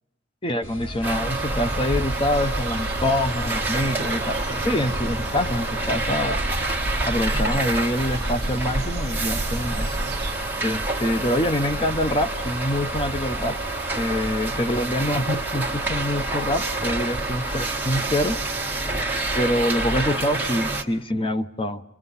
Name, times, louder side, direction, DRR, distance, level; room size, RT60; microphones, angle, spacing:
voice 1, 0.4-6.4 7.1-10.1 10.6-13.6 14.0-18.4 19.3-21.8, left 1 dB, 25° left, 9 dB, 0.8 m, -25 dB
sound 1, 0.6-20.1, equal, 70° left, 6.0 m, -35 dB
sound 2, 1.0-20.8, right 2 dB, 10° right, 1.7 m, -28 dB
sound 3, 2.3-10.3, right 2 dB, 55° right, 1.2 m, -33 dB
29.5 x 23.0 x 5.6 m, 0.87 s
head